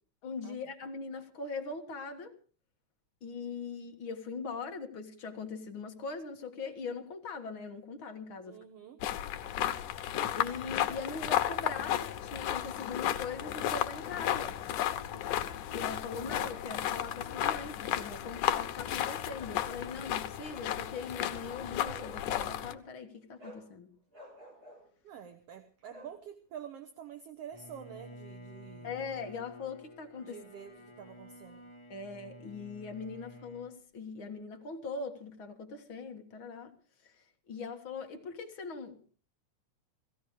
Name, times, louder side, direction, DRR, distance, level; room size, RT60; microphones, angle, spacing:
voice 1, 0.2-2.3 3.2-8.6 10.3-14.6 15.7-23.9 28.8-30.4 31.9-36.7 37.0-39.1, left 4 dB, 50° left, 2.0 m, -41 dB
voice 2, 8.4-9.0 25.0-29.0 30.2-31.7, right 8 dB, 60° right, 2.0 m, -48 dB
sound 1, 9.0-22.7, left 11 dB, 90° left, 2.4 m, -33 dB
Bark, 21.8-22.7 23.4-23.7 24.1-24.9 25.9-26.2, equal, 30° right, 6.3 m, -49 dB
Bowed string instrument, 27.5-33.8, equal, 30° left, 0.5 m, -51 dB
17.0 x 16.5 x 5.0 m
omnidirectional pair, 3.4 m